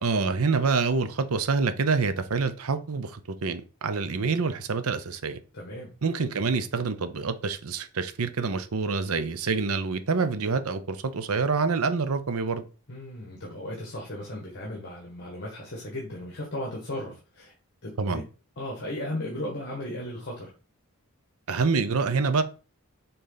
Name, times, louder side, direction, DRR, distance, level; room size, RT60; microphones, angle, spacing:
voice 1, 0.0-5.4 6.0-12.6 18.0-18.2 21.5-22.4, right 4 dB, 75° right, 0.7 m, -26 dB
voice 2, 5.5-5.9 12.9-17.5 17.8-18.2 18.6-20.5, left 1 dB, 50° left, 1.6 m, -36 dB
6.7 x 3.9 x 4.0 m
head